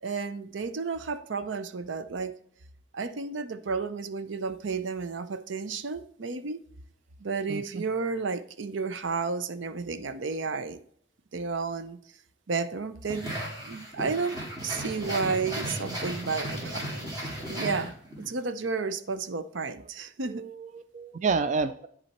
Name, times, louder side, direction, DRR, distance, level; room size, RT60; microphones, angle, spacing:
voice 1, 0.0-2.3 2.9-6.6 7.2-10.8 11.3-12.0 12.5-13.4 13.6-20.4, right 4 dB, 85° right, 12 dB, 0.6 m, -32 dB
voice 2, 7.5-7.8 20.3-21.9, right 4 dB, 40° right, 12 dB, 0.3 m, -30 dB
sound 1, 13.1-18.3, right 1 dB, 20° right, 2.2 m, -35 dB
10.0 x 4.1 x 4.2 m, 0.62 s
head